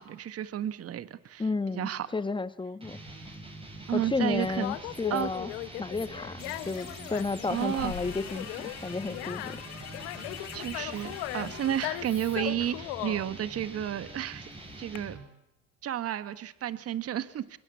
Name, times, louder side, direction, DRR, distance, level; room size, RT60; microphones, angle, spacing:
voice 1, 0.0-1.4 1.7-2.1 3.9-4.7 5.1-5.3 7.5-7.9 10.5-14.5 14.8-15.2 15.8-17.6, right 11 dB, 55° right, 13 dB, 1.6 m, -32 dB
voice 2, 1.4-3.0 3.9-5.5 5.8-9.6, left 3 dB, 15° left, 15 dB, 1.2 m, -32 dB
sound 1, 2.8-15.3, right 2 dB, 20° right, 7.0 m, -45 dB
Conversation, 3.1-15.0, left 17 dB, 85° left, 1.1 m, -39 dB
sound 2, 6.4-11.9, left 9 dB, 65° left, 4.1 m, -45 dB
23.0 x 21.5 x 8.5 m, 0.80 s
supercardioid pair, 75°, 29 cm